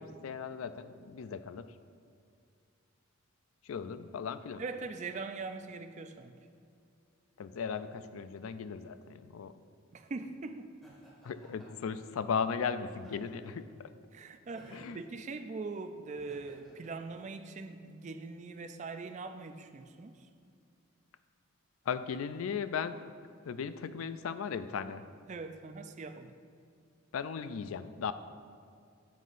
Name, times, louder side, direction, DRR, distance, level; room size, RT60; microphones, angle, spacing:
voice 1, 0.0-1.7 3.6-4.6 7.4-9.5 11.2-13.9 14.7-15.0 21.9-23.0 23.4-25.0 27.1-28.1, left 6 dB, 75° left, 12 dB, 0.4 m, -37 dB
voice 2, 4.6-6.4 9.9-10.7 14.1-20.3 25.3-26.4, right 3 dB, 35° right, 8 dB, 0.4 m, -42 dB
Laughter, 10.8-11.9 12.9-13.6 14.5-15.0 16.1-16.9, equal, ahead, 1.7 m, -55 dB
9.1 x 8.1 x 2.5 m, 2.3 s
head